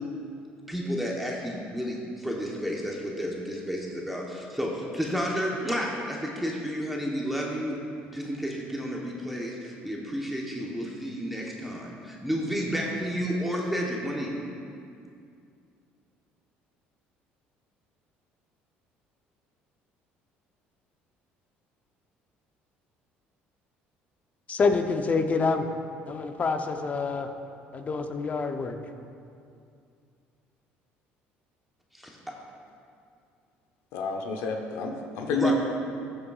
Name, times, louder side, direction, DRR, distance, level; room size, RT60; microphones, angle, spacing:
voice 1, 0.7-7.8 8.1-14.4 31.9-32.2 35.3-35.5, equal, ahead, -2 dB, 1.0 m, -31 dB
voice 2, 24.5-25.7 26.1-27.3 27.7-28.8, left 4 dB, 35° left, 6 dB, 0.7 m, -27 dB
voice 3, 33.9-35.5, left 4 dB, 80° left, 3 dB, 0.8 m, -29 dB
14.0 x 6.8 x 2.4 m, 2.4 s
cardioid pair, 100°, 4 cm